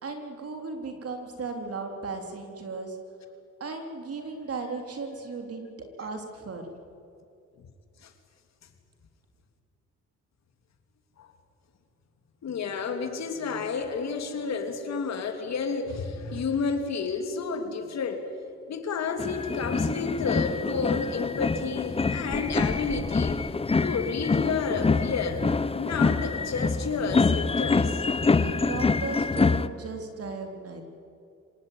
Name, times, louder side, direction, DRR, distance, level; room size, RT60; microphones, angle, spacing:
voice 1, 0.0-3.0 3.6-6.7 28.4-30.8, right 4 dB, 50° right, 5 dB, 3.7 m, -36 dB
voice 2, 12.4-18.3 18.7-23.4 23.8-28.0, left 5 dB, 60° left, 6 dB, 3.3 m, -30 dB
sound 1, 19.2-29.7, left 4 dB, 20° left, 0.9 m, -26 dB
26.0 x 18.0 x 9.5 m, 2.6 s
cardioid pair, 90°, 30 cm